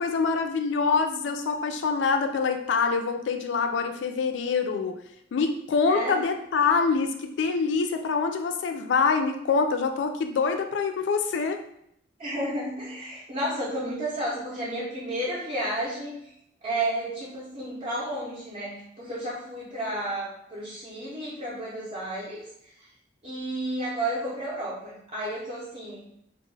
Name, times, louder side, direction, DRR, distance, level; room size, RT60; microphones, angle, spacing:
voice 1, 0.0-5.0 5.3-11.6, left 5 dB, 65° left, 6 dB, 0.3 m, -25 dB
voice 2, 5.9-6.3 12.2-16.1 16.6-22.4 22.8-22.9 23.2-26.1, right 1 dB, 35° right, -8 dB, 0.5 m, -32 dB
2.3 x 2.1 x 3.1 m, 0.75 s
head